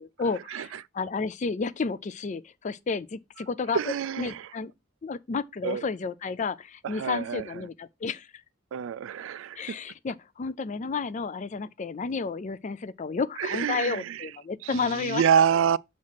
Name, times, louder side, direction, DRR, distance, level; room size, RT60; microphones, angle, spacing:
voice 1, 0.0-4.7 5.0-8.3 9.6-15.3, left 4 dB, 35° left, 0.4 m, -31 dB
voice 2, 3.7-4.4 5.6-5.8 6.9-7.4 8.7-9.6 13.4-14.0 14.8-15.8, right 8 dB, 70° right, 0.3 m, -26 dB
7.3 x 3.1 x 5.7 m
head